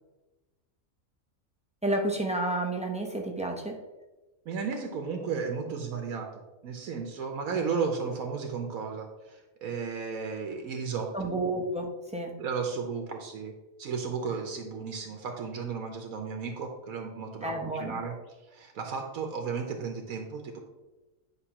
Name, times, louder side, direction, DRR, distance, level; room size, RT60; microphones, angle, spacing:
voice 1, 1.8-3.8 11.1-12.4 17.4-18.0, right 1 dB, 10° right, 2 dB, 0.3 m, -31 dB
voice 2, 4.5-11.1 12.4-13.5 13.8-18.1 18.5-20.6, right 5 dB, 80° right, 3 dB, 1.2 m, -34 dB
9.8 x 5.3 x 2.9 m, 1.1 s
omnidirectional pair, 1.5 m